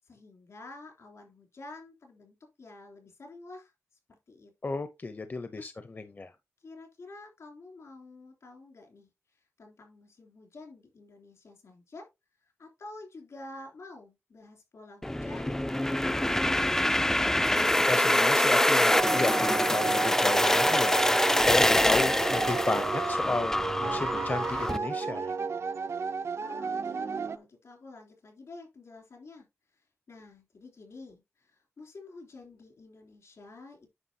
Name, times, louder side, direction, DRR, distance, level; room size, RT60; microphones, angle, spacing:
voice 1, 0.0-3.7 4.3-4.8 5.5-5.7 6.6-12.1 12.6-16.7 26.4-29.5 29.7-33.9, left 2 dB, 75° left, 3.3 m, -49 dB
voice 2, 4.6-6.3 17.9-21.0 21.4-25.3, left 3 dB, 40° left, 0.7 m, -33 dB
sound 1, 15.0-24.8, left 1 dB, 10° left, 0.3 m, -25 dB
sound 2, 18.9-27.4, right 5 dB, 65° right, 0.6 m, -32 dB
9.7 x 5.9 x 2.8 m
wide cardioid pair, 85°, 5 cm